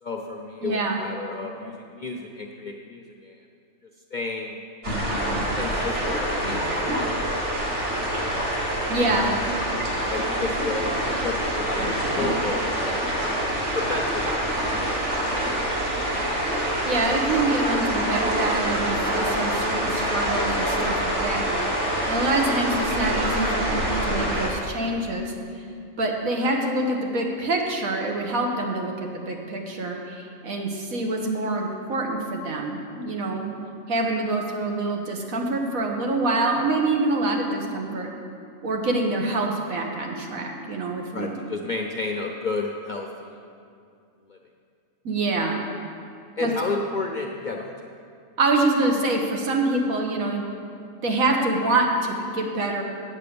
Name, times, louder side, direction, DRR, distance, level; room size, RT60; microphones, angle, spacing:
voice 1, 0.0-3.4 4.1-4.6 5.6-7.1 9.1-9.2 10.0-13.1 13.7-14.4 14.9-15.0 30.5-30.6 41.1-43.5 44.3-44.4 46.4-47.9, left 3 dB, 45° left, 1 dB, 0.6 m, -32 dB
voice 2, 0.6-1.0 8.9-9.3 16.8-21.4 22.1-25.3 26.0-33.5 33.9-38.1 38.6-41.3 45.0-45.6 46.4-46.5 48.4-50.5 51.0-52.8, right 2 dB, 75° right, 1 dB, 1.6 m, -25 dB
sound 1, 4.8-24.5, right 1 dB, 55° right, 2.2 m, -26 dB
8.3 x 8.3 x 6.8 m, 2.4 s
omnidirectional pair, 1.5 m